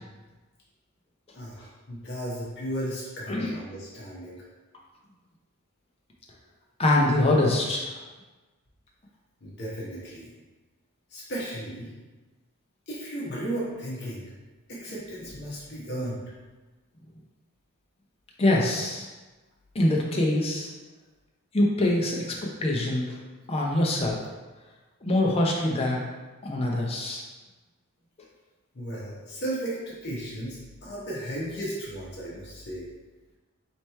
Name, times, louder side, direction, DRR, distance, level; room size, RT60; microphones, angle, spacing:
voice 1, 1.3-4.4 9.4-10.3 11.1-11.9 12.9-14.3 14.7-16.2 24.0-24.1 28.7-32.9, right 1 dB, 50° left, -6 dB, 0.9 m, -35 dB
voice 2, 6.8-7.9 18.4-19.1 19.7-20.7 21.5-23.1 23.5-24.2 25.0-26.0 26.4-27.2, left 1 dB, 25° left, -2 dB, 0.6 m, -24 dB
3.3 x 3.0 x 4.3 m, 1.2 s
head